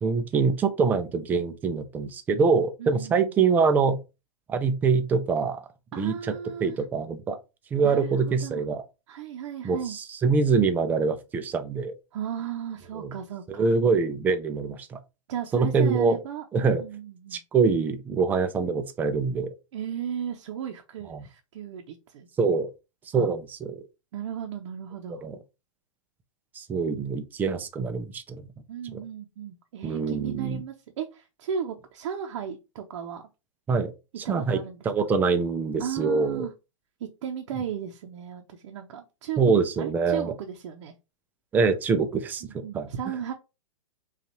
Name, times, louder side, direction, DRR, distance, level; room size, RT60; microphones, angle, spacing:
voice 1, 0.0-4.0 4.5-5.6 6.0-6.4 6.6-7.4 7.7-8.8 9.6-11.9 12.9-13.1 13.5-15.0 15.5-16.2 16.5-16.8 17.3-19.5 21.1-21.2 22.4-22.7 23.1-23.8 25.1-25.4 26.5-28.5 29.8-30.6 33.7-33.9 34.2-34.6 34.9-36.5 39.4-40.3 41.5-42.9, right 5 dB, 10° right, 0.3 m, -24 dB
voice 2, 2.8-3.3 5.9-6.8 7.8-8.6 9.1-10.0 12.1-13.7 15.3-16.4 16.8-17.4 19.7-22.3 23.1-23.3 24.1-25.2 28.7-33.3 34.2-34.8 35.8-36.5 37.0-39.4 39.8-40.9 42.4-43.3, right 8 dB, 55° right, 0.6 m, -35 dB
5.2 x 2.4 x 2.9 m
hypercardioid pair, 140°, 18 cm